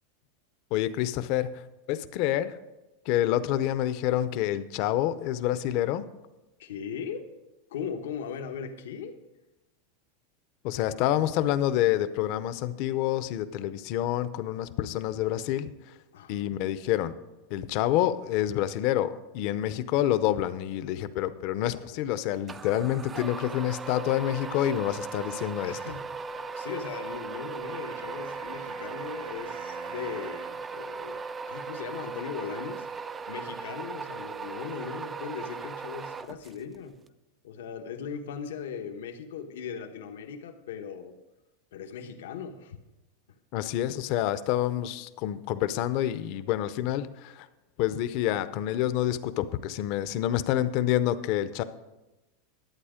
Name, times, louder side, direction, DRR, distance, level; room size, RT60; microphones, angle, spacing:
voice 1, 0.7-1.6 1.9-2.6 3.1-6.1 10.6-15.9 16.3-17.1 17.5-25.8 43.5-47.5 47.8-51.6, left 12 dB, 45° left, 13 dB, 0.6 m, -28 dB
voice 2, 6.6-7.3 7.7-9.1 16.1-16.6 21.7-21.9 25.7-31.2 31.5-37.1 37.4-41.2 41.7-42.8, left 7 dB, 90° left, 5 dB, 1.0 m, -39 dB
sound 1, 22.5-36.8, right 5 dB, 15° right, 0.3 m, -38 dB
sound 2, 27.6-30.6, right 6 dB, 85° right, 2.3 m, -47 dB
11.5 x 8.8 x 5.0 m, 1.0 s
supercardioid pair, 155°, 0 cm